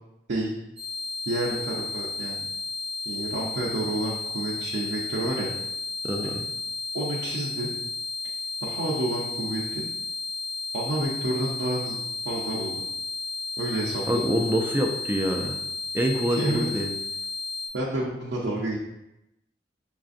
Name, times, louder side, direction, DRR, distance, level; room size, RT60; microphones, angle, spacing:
sound 1, 0.8-17.7, left 4 dB, 30° right, 0.8 m, -33 dB
voice 1, 1.3-2.5 3.1-5.5 6.9-7.7 8.6-9.9 10.7-12.0 12.2-12.8 13.6-14.2 16.3-16.6 17.7-18.8, right 1 dB, 80° right, -5 dB, 0.6 m, -29 dB
voice 2, 6.0-6.5 14.1-15.6 15.9-16.9, equal, 10° right, 2 dB, 0.3 m, -26 dB
5.4 x 2.5 x 2.4 m, 0.91 s
head